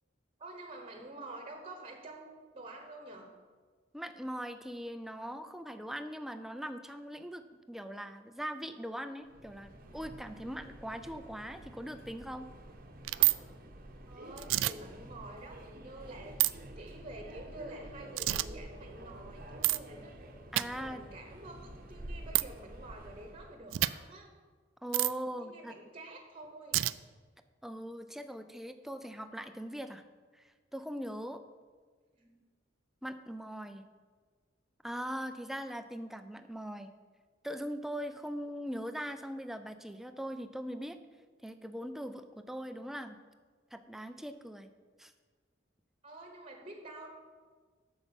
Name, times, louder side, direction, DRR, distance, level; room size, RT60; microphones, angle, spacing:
voice 1, 0.4-3.3 14.1-20.1 20.7-24.3 25.3-26.9 32.1-32.3 46.0-47.1, right 2 dB, 30° right, 3 dB, 1.2 m, -48 dB
voice 2, 3.9-7.4 7.7-12.5 20.5-21.0 24.8-25.7 27.6-30.0 30.3-30.4 30.7-31.4 33.0-33.8 34.8-36.9 37.4-41.0 41.4-43.2 43.7-44.7 45.0-45.1, equal, ahead, 9 dB, 0.5 m, -41 dB
Subway metro underground, 9.2-23.6, right 1 dB, 50° right, 0.9 m, -49 dB
sound 1, 13.1-13.4 14.4-14.7 16.4-16.5 18.2-18.5 19.6-19.8 20.5-20.7 22.3-22.4 23.7-23.9 24.9-25.1 26.7-26.9, right 17 dB, 90° right, 0.3 m, -27 dB
8.1 x 6.0 x 7.1 m, 1.5 s
head